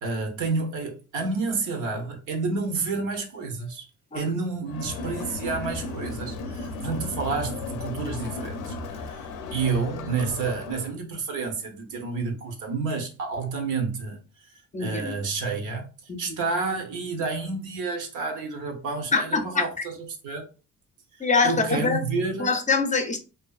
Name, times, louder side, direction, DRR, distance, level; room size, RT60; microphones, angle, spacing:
voice 1, 0.0-3.8 4.1-9.2 9.5-14.2 14.8-15.9 16.2-19.9 20.2-20.5 21.2-22.5, right 4 dB, 80° right, 0.8 m, -29 dB
Crowd, 4.7-11.0, left 3 dB, 80° left, 0.5 m, -35 dB
voice 2, 14.7-15.2 16.1-16.4 19.1-19.6 21.2-22.0 22.4-23.2, left 4 dB, 25° left, 0.5 m, -24 dB
2.5 x 2.4 x 2.3 m
cardioid pair, 90°, 30 cm